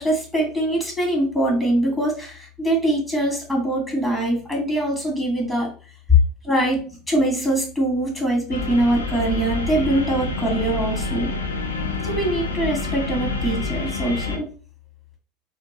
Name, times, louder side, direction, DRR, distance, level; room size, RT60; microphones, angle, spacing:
voice 1, 0.0-5.7 6.1-6.2 6.4-6.8 7.1-11.3 12.0-14.5, right 1 dB, 5° left, -1 dB, 2.0 m, -22 dB
sound 1, 8.5-14.4, left 3 dB, 90° left, 0.6 m, -27 dB
3.6 x 2.5 x 3.8 m, 0.38 s
figure-of-eight pair, 75°, 0 cm